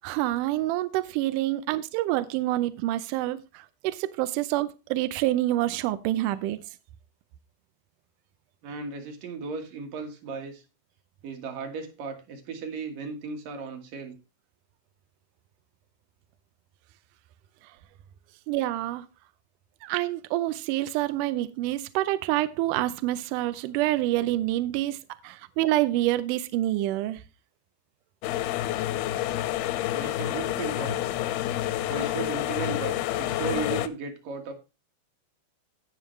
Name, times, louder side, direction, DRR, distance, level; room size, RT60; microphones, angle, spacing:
voice 1, 0.0-6.6 18.5-19.1 19.8-27.2, right 15 dB, 85° right, 1.8 m, -27 dB
voice 2, 8.6-10.6 11.2-14.2 29.9-31.0 31.9-34.5, right 4 dB, 65° right, 3.1 m, -35 dB
sound 1, 28.2-33.9, left 13 dB, 90° left, 2.7 m, -28 dB
16.5 x 5.7 x 3.1 m
omnidirectional pair, 4.4 m